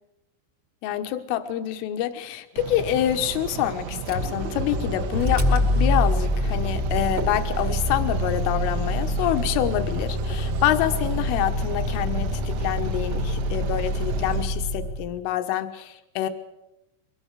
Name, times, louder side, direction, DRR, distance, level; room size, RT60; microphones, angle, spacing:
voice 1, 0.8-16.3, left 12 dB, 80° left, 8 dB, 3.7 m, -26 dB
sound 1, 2.6-14.5, right 8 dB, 80° right, 3.3 m, -35 dB
Motor vehicle (road), 4.0-15.2, left 1 dB, 25° right, 1.1 m, -26 dB
23.0 x 17.5 x 8.2 m, 0.92 s
omnidirectional pair, 5.8 m